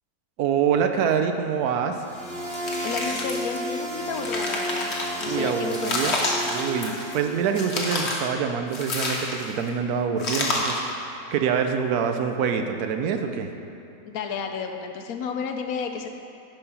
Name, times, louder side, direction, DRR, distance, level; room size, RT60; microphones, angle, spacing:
voice 1, 0.4-2.0 5.2-6.2 6.5-13.5, right 7 dB, 75° right, 6 dB, 1.1 m, -25 dB
sound 1, 2.0-7.8, equal, 20° right, 1.3 m, -33 dB
sound 2, 2.5-3.6 4.0-5.3 5.7-7.2 7.5-8.3 8.7-9.6 10.2-10.9, left 2 dB, 50° left, 1.2 m, -29 dB
voice 2, 2.8-4.9 5.2-6.2 14.0-16.1, left 6 dB, 70° left, 5 dB, 1.1 m, -32 dB
10.5 x 4.6 x 5.6 m, 2.9 s
omnidirectional pair, 1.6 m